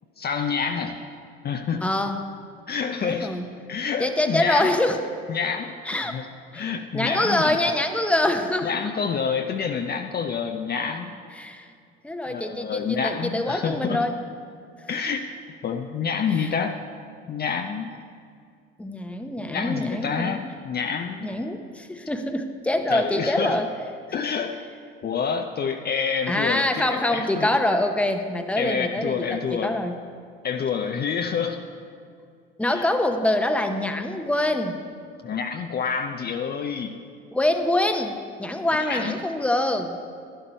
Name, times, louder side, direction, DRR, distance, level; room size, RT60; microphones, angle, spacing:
voice 1, 0.2-1.0 1.4-1.9 2.7-3.4 3.7-4.7 5.3-6.3 6.5-7.7 8.6-11.1 12.3-14.0 14.9-15.3 15.6-16.8 17.3-17.9 19.4-21.3 22.9-23.6 24.1-24.6 25.0-27.5 28.6-29.8 30.4-31.6 32.7-32.9 35.2-37.0 38.8-39.2, left 6 dB, 30° left, 5 dB, 0.6 m, -28 dB
voice 2, 1.8-2.2 3.0-3.5 4.0-5.0 5.8-6.2 6.5-8.7 11.3-11.7 12.0-14.1 15.0-15.2 16.3-16.5 18.8-20.4 21.2-23.7 24.2-24.5 26.3-30.0 32.6-34.8 37.3-40.0, left 1 dB, 5° left, 6 dB, 0.9 m, -25 dB
11.5 x 11.0 x 4.5 m, 2.3 s
hypercardioid pair, 75°, 30 cm